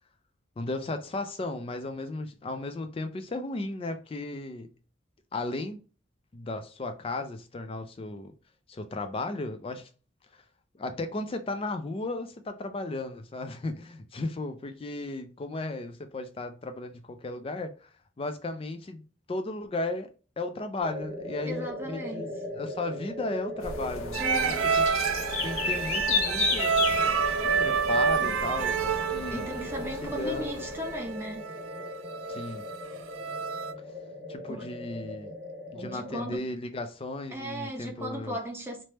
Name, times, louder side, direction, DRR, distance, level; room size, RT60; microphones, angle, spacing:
voice 1, 0.6-4.7 5.3-5.8 6.3-8.3 8.7-9.9 10.7-17.9 18.2-19.0 19.3-20.1 20.4-24.9 25.4-26.7 27.3-30.6 32.3-32.6 34.3-35.3 35.7-38.4, left 2 dB, 30° left, 0.3 m, -35 dB
sound 1, 20.8-36.4, left 1 dB, 55° right, 1.0 m, -40 dB
voice 2, 21.5-22.3 24.2-24.7 29.3-31.4 34.5-34.7 35.7-36.5 37.3-38.8, equal, 10° right, 0.7 m, -36 dB
sound 2, 23.6-31.2, left 5 dB, 75° left, 0.5 m, -34 dB
sound 3, 24.1-33.7, right 6 dB, 80° right, 0.4 m, -29 dB
3.2 x 2.1 x 2.8 m
head